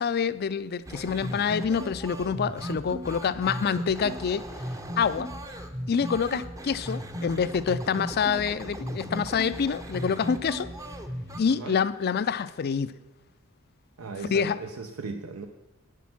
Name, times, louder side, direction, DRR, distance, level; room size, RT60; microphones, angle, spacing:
voice 1, 0.0-4.5 5.0-5.3 5.9-10.7 11.4-12.9 14.3-14.6, left 6 dB, 45° left, 15 dB, 0.4 m, -27 dB
sound 1, 0.9-11.4, right 1 dB, 15° right, 0.7 m, -36 dB
voice 2, 14.0-15.5, right 4 dB, 75° right, 5 dB, 0.7 m, -37 dB
9.4 x 8.3 x 5.9 m, 1.0 s
head